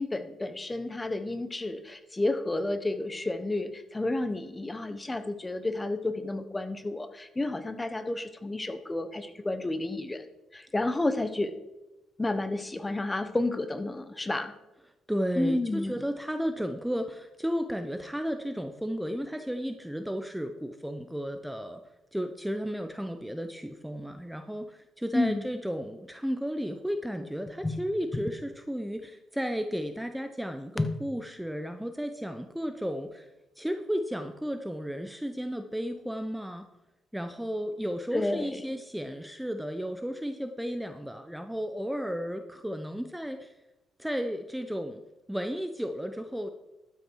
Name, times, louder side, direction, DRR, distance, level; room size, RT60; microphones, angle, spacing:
voice 1, 0.0-10.2 10.5-11.5 12.2-14.5 15.4-16.0 25.1-25.5 27.6-27.8 30.8-30.9 38.1-38.8, left 2 dB, 20° left, 10 dB, 1.1 m, -31 dB
voice 2, 15.1-21.8 22.1-33.3 33.6-36.7 37.1-43.5 44.0-45.0 45.3-46.5, equal, 5° right, 7 dB, 0.8 m, -33 dB
12.5 x 8.6 x 4.7 m, 0.97 s
cardioid pair, 90°, 0 cm